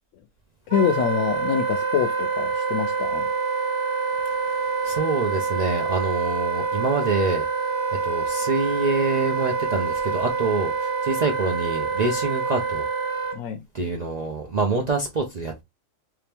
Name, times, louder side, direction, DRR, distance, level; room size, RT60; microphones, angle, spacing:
voice 1, 0.7-3.3 13.3-13.6, left 8 dB, 75° left, 0.9 m, -25 dB
Wind instrument woodwind instrument, 0.7-13.4, right 5 dB, 20° right, 1.2 m, -26 dB
voice 2, 4.4-7.5 8.0-12.8 13.7-15.6, right 3 dB, 45° right, 0.5 m, -26 dB
3.3 x 2.9 x 3.3 m
omnidirectional pair, 1.4 m